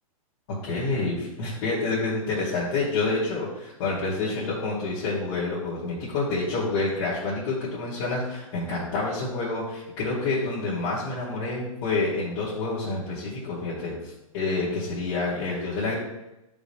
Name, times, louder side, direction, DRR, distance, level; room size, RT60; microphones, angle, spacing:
voice 1, 0.5-15.9, left 3 dB, 50° left, -8 dB, 2.3 m, -28 dB
9.6 x 5.3 x 2.2 m, 0.93 s
hypercardioid pair, 140°, 18 cm